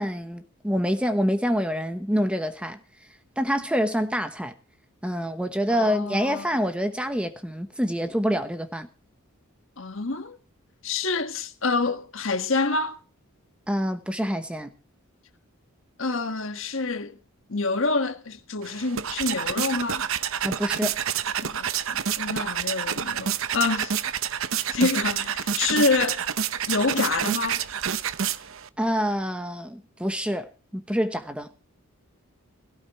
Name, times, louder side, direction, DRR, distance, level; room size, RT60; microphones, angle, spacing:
voice 1, 0.0-2.8 3.4-4.5 5.0-8.9 13.7-14.7 20.4-21.0 28.8-31.5, equal, 5° right, 1.0 m, -26 dB
voice 2, 5.7-6.6 9.8-10.4 10.8-13.0 16.0-17.1 17.5-20.0 21.4-23.9 24.6-26.2 26.7-27.6, left 3 dB, 60° left, 1.6 m, -27 dB
sound 1, 18.6-28.7, right 8 dB, 65° right, 0.8 m, -28 dB
17.5 x 17.0 x 3.1 m
head